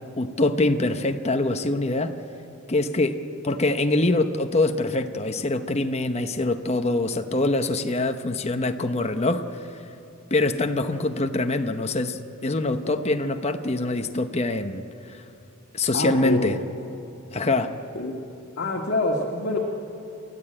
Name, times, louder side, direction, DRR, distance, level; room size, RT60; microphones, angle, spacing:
voice 1, 0.2-2.1 2.7-9.4 10.3-15.2 15.7-16.6 17.3-17.8, left 2 dB, 30° left, 7 dB, 0.8 m, -24 dB
voice 2, 15.9-16.6 17.9-18.2 18.6-19.6, left 2 dB, 55° left, -1 dB, 1.8 m, -26 dB
28.5 x 14.0 x 8.8 m, 2.8 s
head